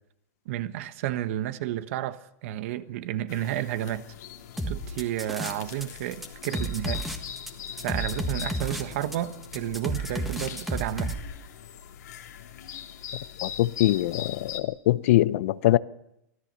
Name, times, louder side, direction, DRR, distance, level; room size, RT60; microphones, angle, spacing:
voice 1, 0.4-4.1 4.7-7.0 7.8-11.1, right 13 dB, 50° right, 1.3 m, -31 dB
sound 1, 3.3-14.6, left 9 dB, 85° left, 2.9 m, -41 dB
sound 2, 4.6-5.8 6.1-11.2, right 1 dB, ahead, 1.6 m, -32 dB
voice 2, 13.4-15.8, left 15 dB, 55° left, 0.7 m, -23 dB
24.5 x 16.5 x 6.8 m
supercardioid pair, 160°, 9 cm